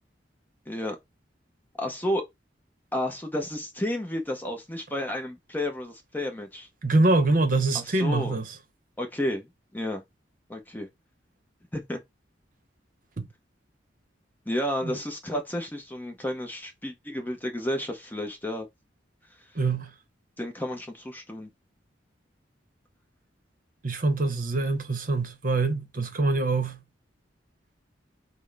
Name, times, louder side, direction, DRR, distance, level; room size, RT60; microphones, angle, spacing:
voice 1, 0.7-1.0 1.8-2.3 2.9-6.7 7.7-8.4 9.0-10.0 10.5-10.9 11.7-12.0 14.5-18.7 20.4-21.5, left 1 dB, 10° left, 0.7 m, -31 dB
voice 2, 6.8-8.6 13.2-13.3 14.8-15.0 19.5-19.9 23.8-26.8, right 3 dB, 45° right, 0.8 m, -24 dB
5.9 x 2.1 x 3.3 m
head